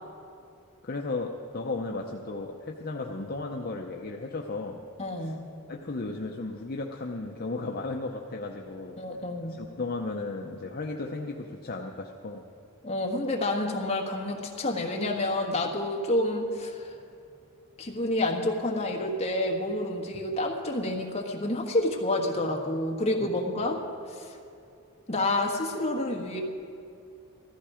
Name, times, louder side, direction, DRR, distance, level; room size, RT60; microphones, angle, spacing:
voice 1, 0.8-4.8 5.2-5.3 5.7-9.0 9.5-12.4 23.2-23.3, left 3 dB, 45° left, 1 dB, 0.7 m, -35 dB
voice 2, 5.0-5.5 9.0-9.6 12.8-16.9 17.8-23.8 24.1-24.4 25.1-26.4, left 1 dB, 30° left, 0 dB, 1.4 m, -29 dB
15.0 x 14.0 x 5.0 m, 2.5 s
head